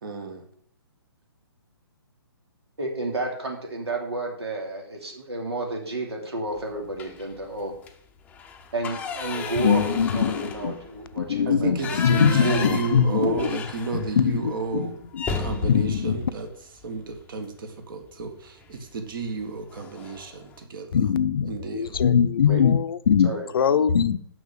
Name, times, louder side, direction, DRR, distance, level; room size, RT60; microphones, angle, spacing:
voice 1, 0.0-0.4 11.5-14.9 15.4-16.5 16.8-20.9 21.5-22.0, right 4 dB, 55° right, 6 dB, 1.8 m, -32 dB
voice 2, 2.8-7.7 8.7-11.7 12.1-13.5 22.5-22.6 23.2-23.5, right 2 dB, 85° right, 1 dB, 2.9 m, -31 dB
sound 1, 6.9-7.4 7.8-7.9 8.3-14.3 14.6-14.7 15.1-17.3 18.6-18.9 19.3-19.4 19.7-20.3, left 5 dB, 10° left, 0.7 m, -34 dB
voice 3, 9.6-10.7 11.2-13.5 13.9-15.2 15.6-16.2 20.9-24.2, left 7 dB, 60° left, 13 dB, 0.6 m, -22 dB
6.2 x 6.2 x 7.3 m, 0.63 s
hypercardioid pair, 145°, 13 cm